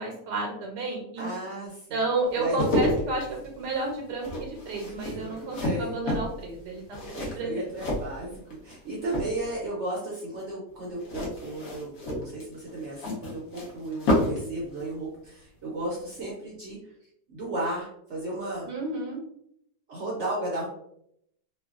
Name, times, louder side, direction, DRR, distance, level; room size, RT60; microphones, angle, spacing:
voice 1, 0.0-1.3 1.9-3.3 3.6-7.6 18.7-19.2, right 2 dB, 80° right, 0 dB, 1.2 m, -31 dB
voice 2, 1.2-2.1 2.4-2.9 4.8-6.0 7.1-16.9 17.3-18.7 19.9-20.7, right 1 dB, 60° right, -4 dB, 0.8 m, -34 dB
sound 1, 2.3-8.8 9.0-9.7 11.0-14.5 14.8-14.9, left 1 dB, 60° left, 1.2 m, -30 dB
3.1 x 2.3 x 2.3 m, 0.73 s
omnidirectional pair, 1.8 m